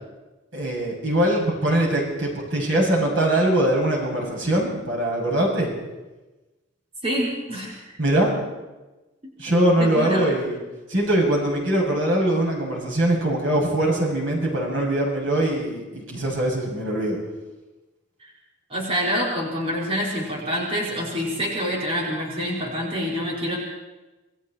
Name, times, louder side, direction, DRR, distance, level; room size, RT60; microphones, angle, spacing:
voice 1, 0.5-5.7 8.0-8.5 9.4-10.6 10.9-17.2, right 1 dB, 80° right, -1 dB, 7.3 m, -22 dB
voice 2, 7.0-7.7 9.8-10.3 18.2-18.3 18.7-23.6, equal, 30° right, -4 dB, 5.2 m, -26 dB
27.5 x 20.5 x 4.5 m, 1.1 s
head